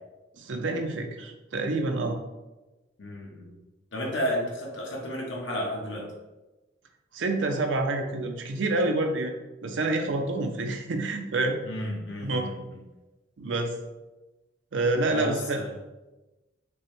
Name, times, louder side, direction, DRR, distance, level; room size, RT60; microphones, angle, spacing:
voice 1, 0.4-2.2 7.1-9.3 9.6-11.6 12.2-12.5 13.4-13.8 14.7-15.6, right 2 dB, 85° right, 4 dB, 0.5 m, -27 dB
voice 2, 3.0-3.6 3.9-6.1 11.6-12.8 15.1-15.7, equal, 85° left, -2 dB, 1.0 m, -32 dB
5.1 x 2.1 x 3.1 m, 1.1 s
head